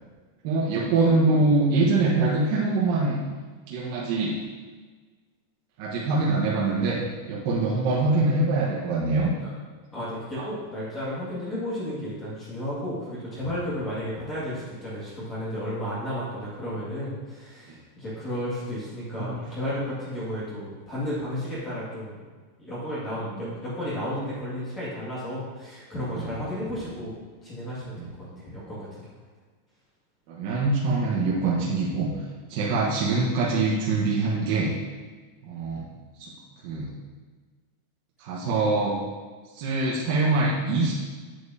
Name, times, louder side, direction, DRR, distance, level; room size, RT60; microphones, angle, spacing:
voice 1, 0.4-3.2 3.7-4.3 5.8-7.0 7.3-9.3 10.4-10.5 19.2-19.4 23.4-23.5 26.1-26.3 28.0-28.4 30.3-32.1 32.5-34.7 35.4-35.8 36.2-36.3 36.6-36.9 38.2-39.0 39.5-40.9, right 3 dB, 50° right, -5 dB, 1.2 m, -24 dB
voice 2, 9.9-22.2 22.6-27.2 27.4-29.1, equal, 20° left, -9 dB, 2.1 m, -33 dB
8.2 x 7.8 x 2.8 m, 1.4 s
supercardioid pair, 160°, 0 cm